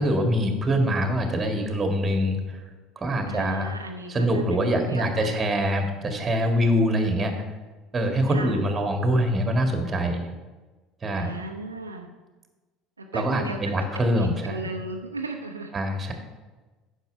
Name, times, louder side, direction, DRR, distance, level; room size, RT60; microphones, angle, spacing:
voice 1, 0.0-2.6 3.0-3.7 4.1-7.3 7.9-10.3 11.0-11.3 13.1-14.7 15.7-16.1, equal, 25° right, 5 dB, 1.8 m, -24 dB
voice 2, 3.3-5.4 8.3-8.6 11.1-12.1 13.0-13.6 14.1-15.7, right 2 dB, 85° right, 3 dB, 0.6 m, -36 dB
9.2 x 6.4 x 5.6 m, 1.2 s
figure-of-eight pair, 65°, 0 cm